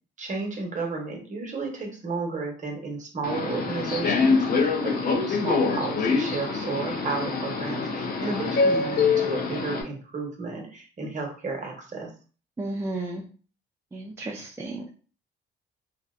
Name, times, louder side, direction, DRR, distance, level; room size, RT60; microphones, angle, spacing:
voice 1, 0.2-12.1, right 3 dB, 40° right, 0 dB, 1.0 m, -33 dB
Subway metro underground, 3.2-9.8, left 4 dB, 50° left, 0.5 m, -25 dB
voice 2, 12.6-13.2 13.9-14.9, right 2 dB, 15° right, -2 dB, 0.4 m, -33 dB
2.7 x 2.1 x 2.4 m, 0.39 s
cardioid pair, 90°, 20 cm